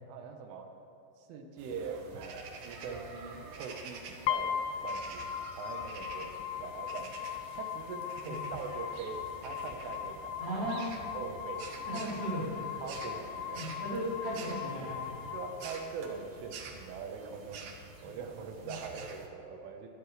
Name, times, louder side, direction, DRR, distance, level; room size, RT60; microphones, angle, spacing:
voice 1, 0.1-0.7 1.2-7.3 7.6-10.6 11.1-11.7 12.8-13.6 15.3-19.9, right 5 dB, 85° right, 3 dB, 3.7 m, -42 dB
sound 1, 1.6-19.3, right 4 dB, 70° right, 2.1 m, -48 dB
sound 2, 4.3-16.3, left 9 dB, 85° left, 3.0 m, -39 dB
voice 2, 8.2-8.5 10.4-10.8 11.9-12.6 13.5-15.0 18.0-18.1 18.6-18.7, right 1 dB, 50° right, -7 dB, 5.6 m, -36 dB
22.5 x 12.0 x 3.3 m, 2.7 s
omnidirectional pair, 5.5 m